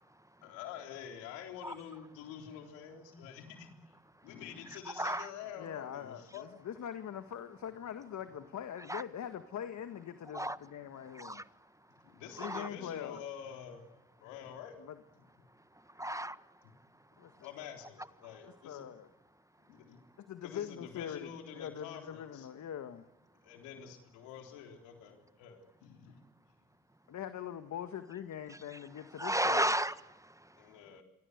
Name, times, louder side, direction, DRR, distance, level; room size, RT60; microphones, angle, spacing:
voice 1, 0.4-3.9 4.2-6.5 12.0-13.9 14.2-14.8 15.4-15.5 16.6-16.7 17.4-18.9 19.7-20.0 20.4-22.5 23.4-26.2 30.6-31.0, left 8 dB, 90° left, 3.7 m, -47 dB
voice 2, 4.9-5.3 8.9-9.0 10.3-10.6 11.1-11.4 12.4-12.7 15.9-16.4 28.5-28.8 29.2-30.6, right 1 dB, 10° right, 1.4 m, -34 dB
voice 3, 5.6-11.5 12.4-13.2 14.8-15.0 17.2-17.5 18.6-19.1 20.2-23.1 27.1-29.7, left 9 dB, 70° left, 1.8 m, -43 dB
28.0 x 25.0 x 8.1 m
hypercardioid pair, 45°, 30 cm